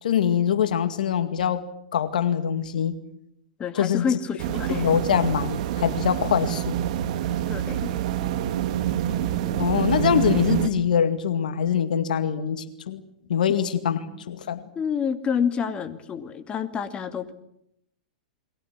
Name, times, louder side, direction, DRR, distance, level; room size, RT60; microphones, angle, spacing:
voice 1, 0.0-1.6 1.9-2.9 3.7-4.1 4.7-6.8 9.6-13.0 13.3-14.0 14.3-14.6, left 8 dB, 75° left, 11 dB, 2.1 m, -23 dB
voice 2, 3.6-4.8 7.5-7.9 13.5-13.7 13.9-14.2 14.7-17.3, left 7 dB, 25° left, 9 dB, 2.5 m, -28 dB
sound 1, 4.4-10.7, right 11 dB, 60° right, 2.7 m, -26 dB
30.0 x 23.0 x 7.6 m, 0.76 s
hypercardioid pair, 110°, 5 cm